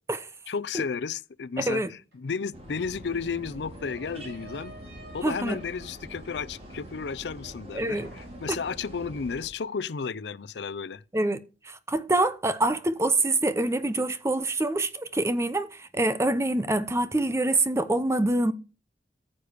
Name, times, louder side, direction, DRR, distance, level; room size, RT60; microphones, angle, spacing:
voice 1, 0.5-4.7 5.1-11.0, left 5 dB, 75° left, 0.5 m, -33 dB
voice 2, 1.6-1.9 5.2-5.6 7.7-8.1 8.5-8.6 11.1-11.4 11.6-18.5, right 2 dB, 15° right, 0.7 m, -25 dB
sound 1, 2.1-2.2 2.5-7.7 8.0-8.7, right 2 dB, 70° right, 4.7 m, -51 dB
sound 2, 2.5-9.5, equal, 35° right, 2.6 m, -45 dB
14.0 x 6.8 x 5.1 m
head